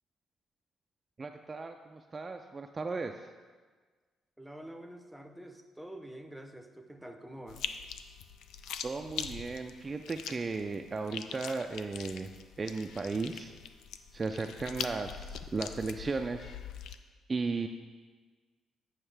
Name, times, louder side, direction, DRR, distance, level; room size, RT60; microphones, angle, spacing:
voice 1, 1.2-3.1 8.8-12.3 12.6-13.5 14.1-16.5 17.3-17.7, right 4 dB, 30° right, 5 dB, 0.3 m, -35 dB
voice 2, 4.4-7.7, right 1 dB, ahead, 4 dB, 0.7 m, -47 dB
sound 1, 7.5-17.0, left 8 dB, 85° left, 0.3 m, -43 dB
8.9 x 5.5 x 3.3 m, 1.5 s
cardioid pair, 90°, 0 cm